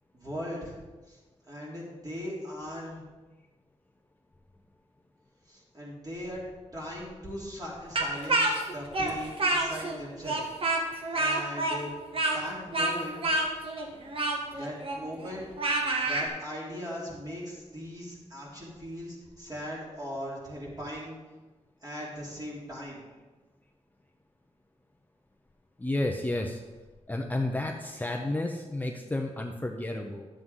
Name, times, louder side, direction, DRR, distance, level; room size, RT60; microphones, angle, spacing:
voice 1, 0.1-0.8 1.1-1.2 1.4-3.0 5.5-6.5 6.7-10.4 11.1-11.9 12.3-13.2 14.5-15.4 16.0-21.2 21.8-23.0, equal, 35° right, -5 dB, 3.6 m, -39 dB
Speech, 8.0-10.0 10.2-16.3, right 2 dB, 55° right, 1.5 m, -28 dB
voice 2, 25.8-26.6 27.1-30.3, left 2 dB, 15° left, 2 dB, 0.7 m, -31 dB
11.5 x 7.7 x 3.7 m, 1.3 s
wide cardioid pair, 100°, 12 cm